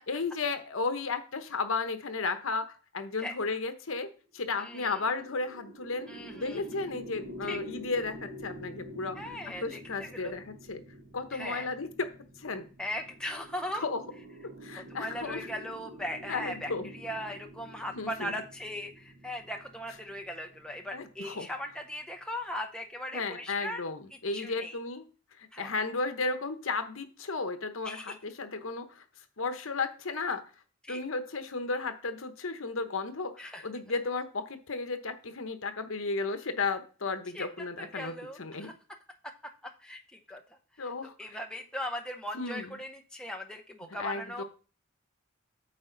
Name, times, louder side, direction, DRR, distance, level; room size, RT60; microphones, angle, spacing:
voice 1, 0.1-2.6 2.9-4.1 4.3-6.1 6.3-9.2 9.6-10.8 11.1-12.1 12.4-12.7 13.7-14.0 14.6-15.5 16.3-16.9 17.9-18.3 20.9-21.5 23.1-25.0 25.4-29.0 29.4-30.4 30.9-38.7 40.8-41.4 42.3-42.8 43.9-44.4, left 3 dB, 75° left, 8 dB, 1.0 m, -34 dB
sound 1, 4.4-21.8, equal, 55° right, 0.8 m, -48 dB
voice 2, 4.6-5.0 6.1-6.6 7.4-7.6 9.1-10.3 11.3-11.7 12.8-13.8 14.9-23.8 24.3-24.8 25.5-25.7 27.8-28.1 30.8-31.0 33.4-33.7 37.3-37.5 37.8-38.7 39.8-40.0 40.3-40.4 40.8-40.9 41.2-44.4, left 1 dB, 5° left, 2 dB, 0.7 m, -38 dB
8.8 x 5.4 x 3.9 m, 0.38 s
head